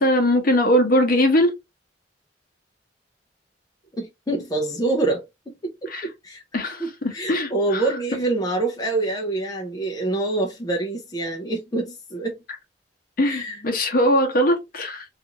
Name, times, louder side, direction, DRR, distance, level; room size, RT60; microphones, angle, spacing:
voice 1, 0.0-1.5 5.9-6.1 6.5-7.8 13.2-15.0, equal, 55° left, 0.8 m, -20 dB
voice 2, 4.0-5.2 5.6-6.4 6.8-12.4 13.2-13.6, right 2 dB, 20° left, 0.5 m, -26 dB
2.5 x 2.5 x 2.8 m
head